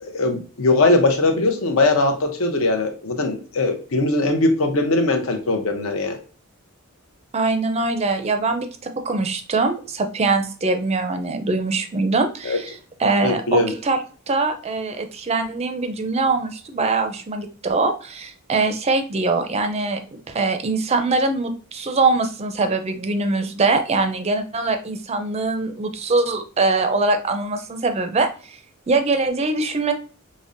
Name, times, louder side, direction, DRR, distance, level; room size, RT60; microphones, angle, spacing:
voice 1, 0.0-6.2 12.4-12.6 13.2-13.7, left 2 dB, 65° left, 4 dB, 0.7 m, -20 dB
voice 2, 7.3-14.0 14.3-20.0 20.3-28.6 28.9-29.9, right 3 dB, 30° right, 7 dB, 0.4 m, -22 dB
5.1 x 2.1 x 2.5 m, 0.40 s
head